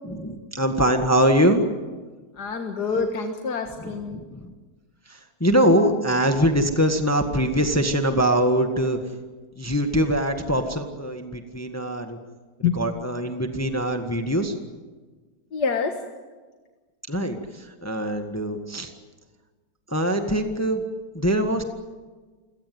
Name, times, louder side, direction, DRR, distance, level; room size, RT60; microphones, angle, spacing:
voice 1, 0.0-1.6 3.8-4.5 5.1-9.0 9.6-12.2 12.6-14.5 17.1-18.9 19.9-20.8 21.1-21.6, equal, 10° left, 6 dB, 1.6 m, -23 dB
voice 2, 2.4-4.2 12.6-12.7 15.5-16.0, left 5 dB, 65° left, 4 dB, 2.2 m, -26 dB
28.5 x 18.0 x 9.4 m, 1.4 s
omnidirectional pair, 1.9 m